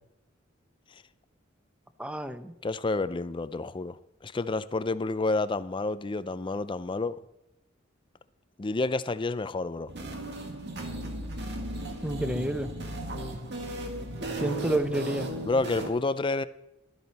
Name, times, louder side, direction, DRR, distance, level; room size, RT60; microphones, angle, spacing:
voice 1, 2.0-2.5 12.0-12.7 14.4-15.3, right 1 dB, 5° right, 0.7 m, -29 dB
voice 2, 2.6-4.0 4.2-7.2 8.6-9.9 15.5-16.4, left 3 dB, 25° left, 0.4 m, -29 dB
sound 1, 9.9-15.9, right 1 dB, 60° right, 1.8 m, -36 dB
12.0 x 12.0 x 4.1 m
head